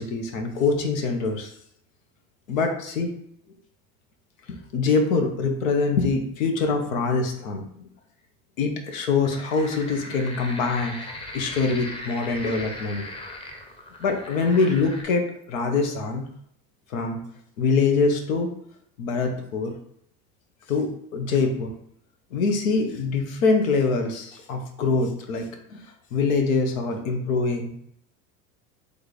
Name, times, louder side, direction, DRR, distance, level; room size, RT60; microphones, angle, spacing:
voice 1, 0.0-1.5 2.5-3.1 4.5-7.9 8.6-11.0 11.3-13.0 14.0-16.3 16.9-17.2 17.6-18.5 19.0-19.7 20.7-21.7 22.3-25.8 26.1-27.7, left 4 dB, 90° left, 3 dB, 1.0 m, -24 dB
sound 1, 9.2-15.0, left 1 dB, 15° left, 0.7 m, -38 dB
3.5 x 3.2 x 4.1 m, 0.68 s
supercardioid pair, 105°, 39 cm